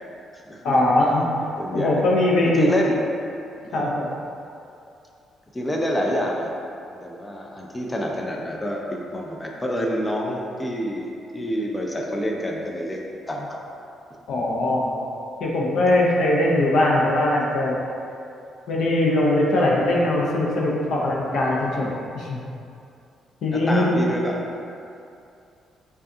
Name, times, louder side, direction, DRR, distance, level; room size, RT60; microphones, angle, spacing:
voice 1, 0.6-1.3 1.7-2.7 3.7-4.1 14.3-14.9 15.4-17.7 18.7-22.4 23.4-24.0, left 1 dB, 75° left, -3 dB, 0.7 m, -21 dB
voice 2, 1.6-2.0 2.5-3.0 3.7-3.9 5.5-6.5 6.9-13.6 23.5-24.4, equal, 15° left, -1 dB, 0.4 m, -27 dB
5.1 x 2.4 x 2.7 m, 2.6 s
cardioid pair, 90°, 0 cm